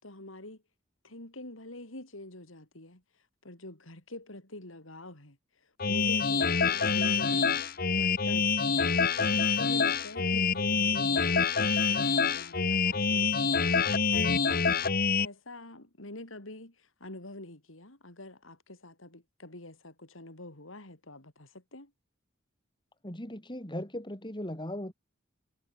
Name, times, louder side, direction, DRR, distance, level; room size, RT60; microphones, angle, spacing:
voice 1, 0.0-0.6 1.0-8.9 9.3-14.8 15.2-21.9, left 2 dB, 90° left, 4.9 m, -46 dB
sound 1, 5.8-15.3, left 5 dB, 50° left, 1.5 m, -26 dB
voice 2, 23.0-24.9, left 1 dB, 25° left, 4.6 m, -38 dB
head